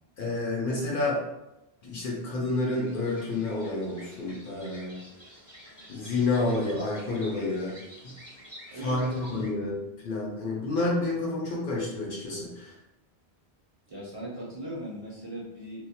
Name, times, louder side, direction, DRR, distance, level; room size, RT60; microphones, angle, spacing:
voice 1, 0.2-1.2 1.8-5.0 5.9-7.7 8.0-8.1 8.7-9.8 10.0-12.7, left 2 dB, 60° left, -2 dB, 0.7 m, -29 dB
sound 1, 2.7-9.5, equal, 20° left, 0.5 m, -50 dB
voice 2, 8.7-9.5 13.9-15.9, right 1 dB, 40° right, -7 dB, 0.6 m, -38 dB
2.2 x 2.1 x 2.7 m, 0.94 s
omnidirectional pair, 1.1 m